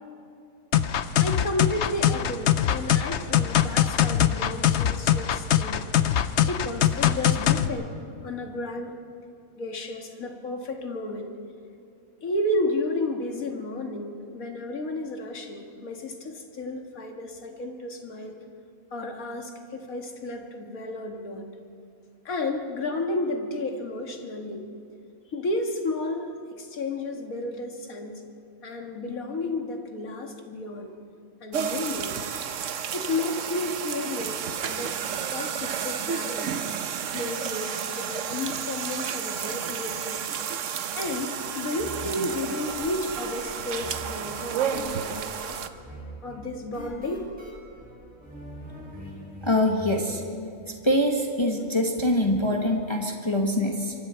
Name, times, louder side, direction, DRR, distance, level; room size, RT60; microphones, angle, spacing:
sound 1, 0.7-7.7, left 10 dB, 60° left, 0.9 m, -22 dB
voice 1, 1.2-5.9 6.4-7.9 8.2-8.9 9.6-11.3 12.2-18.4 18.9-21.5 22.3-24.6 25.3-28.2 28.6-30.9 31.4-32.2 32.9-35.0 35.2-36.6 37.1-40.2 41.0-45.6 46.2-47.3 52.3-52.6, left 2 dB, 75° left, 3 dB, 2.3 m, -32 dB
sound 2, 31.5-45.7, right 8 dB, 65° right, 1.1 m, -31 dB
sound 3, 41.8-50.0, right 1 dB, 5° right, 4.7 m, -43 dB
voice 2, 49.4-50.2 50.8-53.9, left 1 dB, 20° left, 1 dB, 1.5 m, -24 dB
24.5 x 24.5 x 4.5 m, 2.5 s
omnidirectional pair, 1.5 m